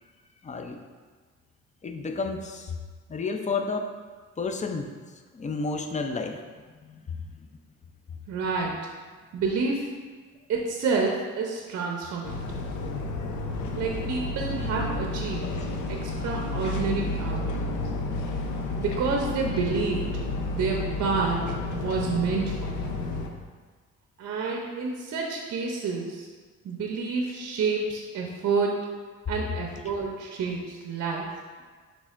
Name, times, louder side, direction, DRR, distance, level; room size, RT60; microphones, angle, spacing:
voice 1, 0.4-0.8 1.8-2.8 3.1-3.9 4.4-4.9 5.3-6.4 6.8-7.5 15.6-15.7, left 4 dB, 25° left, 5 dB, 0.4 m, -31 dB
voice 2, 8.3-8.7 9.3-9.9 10.5-12.6 13.7-15.5 15.9-17.7 18.8-20.1 20.5-21.5 21.7-23.0 24.2-26.3 26.6-28.9 29.3-31.3, right 4 dB, 55° right, 0 dB, 0.6 m, -29 dB
sound 1, 12.2-23.3, left 2 dB, 75° left, 0.6 m, -31 dB
6.0 x 3.5 x 2.5 m, 1.5 s
cardioid pair, 90°, 30 cm